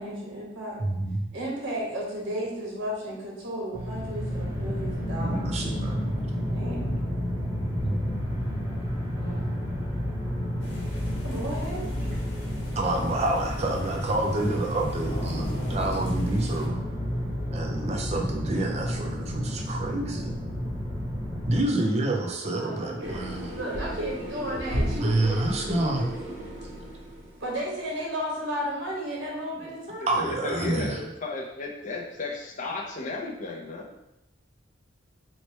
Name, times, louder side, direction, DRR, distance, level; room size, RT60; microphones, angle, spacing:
voice 1, 0.0-0.8 1.3-5.5 6.5-6.9 9.2-9.5 11.2-12.1 18.5-18.6 22.5-23.2 23.5-26.0 27.4-30.4, equal, 80° right, -4 dB, 1.2 m, -34 dB
voice 2, 0.8-1.3 5.1-6.2 7.7-8.0 12.0-12.1 12.8-16.8 17.5-20.4 21.5-23.5 25.0-26.0 30.1-31.0, right 2 dB, 35° right, 1 dB, 0.4 m, -28 dB
sound 1, 3.7-21.7, equal, 10° right, 0.8 m, -31 dB
sound 2, 10.6-16.7, left 1 dB, 70° left, 1.0 m, -40 dB
sound 3, 23.0-27.6, equal, 60° right, 0.8 m, -34 dB
voice 3, 30.2-34.0, left 2 dB, 40° left, -1 dB, 0.5 m, -34 dB
3.1 x 2.2 x 4.1 m, 0.90 s
head